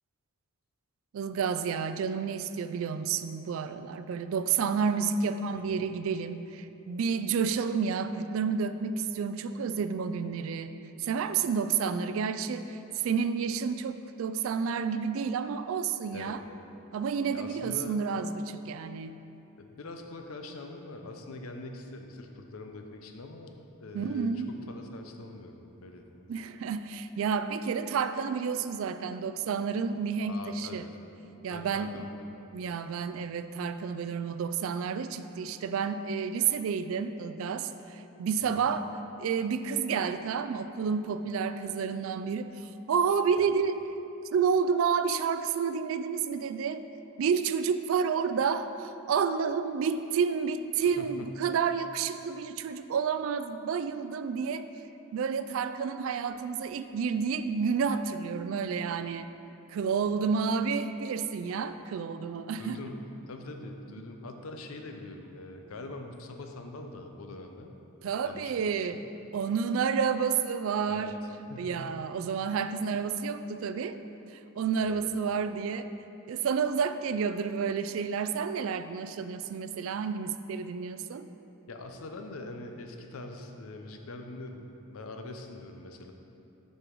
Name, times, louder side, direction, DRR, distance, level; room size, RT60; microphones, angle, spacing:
voice 1, 1.1-10.7 11.0-16.4 16.9-19.2 23.9-24.5 26.3-30.8 31.4-32.0 32.5-37.7 38.2-38.9 39.2-42.5 42.9-43.8 44.3-46.8 47.2-54.7 55.1-59.3 59.7-62.8 68.0-69.0 69.3-71.1 71.6-74.0 74.6-75.9 76.3-81.3, right 6 dB, 70° right, 11 dB, 0.3 m, -30 dB
voice 2, 17.3-18.0 19.6-23.5 23.8-26.0 30.3-31.0 31.5-32.3 32.7-32.8 38.4-38.7 43.4-43.5 50.8-51.3 62.6-63.0 63.3-67.7 68.2-69.0 70.9-71.8 74.8-75.1 81.7-86.1, left 2 dB, 80° left, 4 dB, 0.6 m, -43 dB
6.7 x 5.4 x 4.7 m, 2.9 s
head